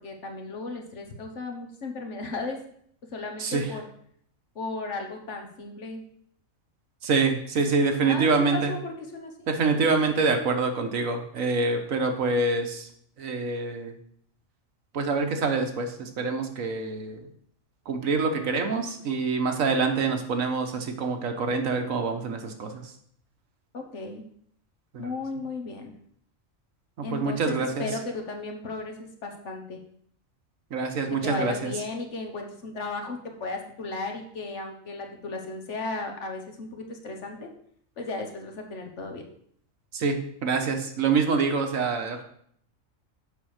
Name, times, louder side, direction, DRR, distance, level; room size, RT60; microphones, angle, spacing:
voice 1, 0.0-2.6 3.1-3.8 4.5-6.0 8.0-9.5 23.7-24.2 25.0-25.9 27.0-29.8 30.9-37.5 38.0-39.3, left 3 dB, 60° left, 3 dB, 1.5 m, -35 dB
voice 2, 7.0-8.7 9.5-12.9 13.2-13.9 14.9-17.3 17.9-22.9 24.9-25.1 27.0-27.9 30.7-31.7 39.9-42.2, right 4 dB, 75° right, 5 dB, 1.4 m, -26 dB
7.1 x 5.3 x 6.4 m, 0.65 s
omnidirectional pair, 1.4 m